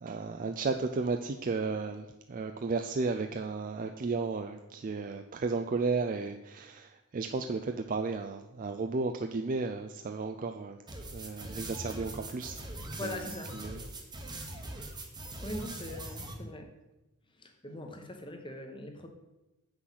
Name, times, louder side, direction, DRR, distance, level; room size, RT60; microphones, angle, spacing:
voice 1, 0.0-10.8 11.1-12.7 13.0-13.8, right 4 dB, 35° right, 6 dB, 0.4 m, -34 dB
sound 1, 10.9-16.3, right 1 dB, 20° right, 1.1 m, -42 dB
voice 2, 13.0-13.6 15.4-16.7 17.4-19.1, left 1 dB, 20° left, 4 dB, 1.1 m, -41 dB
7.8 x 6.1 x 5.7 m, 0.98 s
head